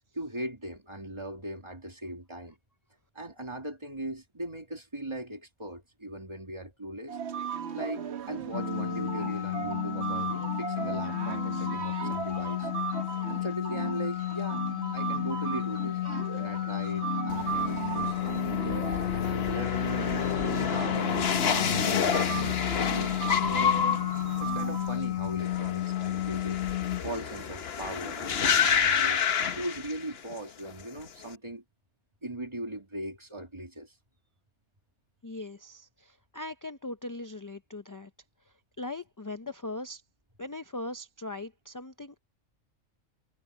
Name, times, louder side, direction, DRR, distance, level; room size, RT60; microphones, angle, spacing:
voice 1, 0.1-2.6 3.1-7.2 7.7-12.8 13.3-14.7 14.9-16.0 16.4-18.5 19.1-20.2 20.6-23.9 24.4-26.6 27.0-29.2 29.6-31.6 32.2-33.9, right 1 dB, 20° right, 2.6 m, -39 dB
sound 1, 7.1-24.9, right 8 dB, 60° right, 1.2 m, -37 dB
sound 2, 8.5-27.0, left 14 dB, 85° left, 1.0 m, -32 dB
sound 3, 17.3-30.4 30.7-31.2, left 7 dB, 55° left, 1.1 m, -29 dB
voice 2, 35.2-38.1 38.5-40.0 40.4-42.2, left 2 dB, 25° left, 0.4 m, -40 dB
omnidirectional pair, 1.3 m